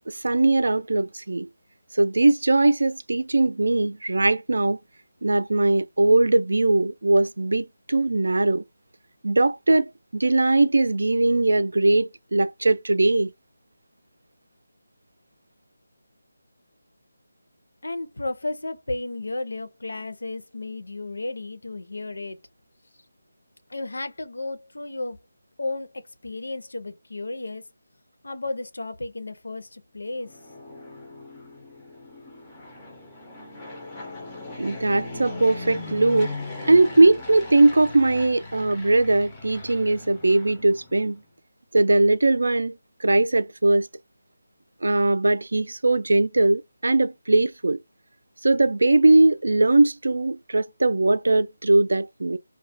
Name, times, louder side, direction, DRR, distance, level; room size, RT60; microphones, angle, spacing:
voice 1, 0.1-1.5 1.9-4.8 5.2-8.6 9.2-13.3 34.6-36.3 36.7-41.2 41.7-42.8 43.0-43.9 44.8-47.8 48.4-52.4, right 2 dB, 75° right, 0.3 m, -20 dB
voice 2, 17.8-22.4 23.7-25.2 25.6-27.6 28.2-30.3, left 2 dB, 80° left, 0.6 m, -33 dB
Fixed-wing aircraft airplane, 30.1-41.2, left 2 dB, 10° left, 0.4 m, -39 dB
2.3 x 2.1 x 2.5 m
figure-of-eight pair, 175°, 0 cm